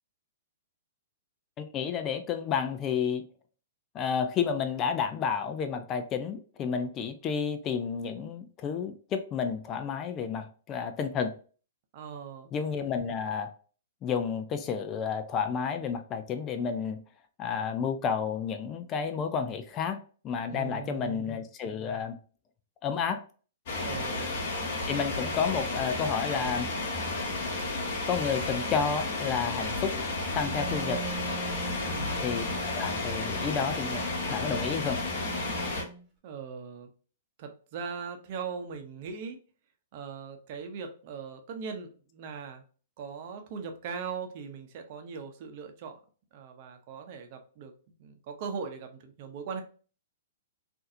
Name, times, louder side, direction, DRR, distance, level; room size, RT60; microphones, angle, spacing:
voice 1, 1.6-3.2 3.9-11.4 12.5-13.5 14.0-17.0 17.4-22.2 22.8-23.2 24.9-26.7 28.1-29.9 30.3-31.0 32.2-35.0, left 6 dB, 30° left, 0.5 m, -31 dB
voice 2, 11.9-12.5 20.5-21.4 23.8-24.5 31.8-32.3 36.2-36.9 37.4-39.4 39.9-42.6 43.0-46.0 46.3-47.7 48.0-49.6, right 6 dB, 50° right, 0.7 m, -40 dB
sound 1, 23.7-35.8, left 2 dB, 55° left, 1.1 m, -32 dB
Wind instrument woodwind instrument, 30.3-36.0, right 3 dB, 20° right, 1.5 m, -43 dB
3.9 x 2.6 x 2.7 m
hypercardioid pair, 115°, 0 cm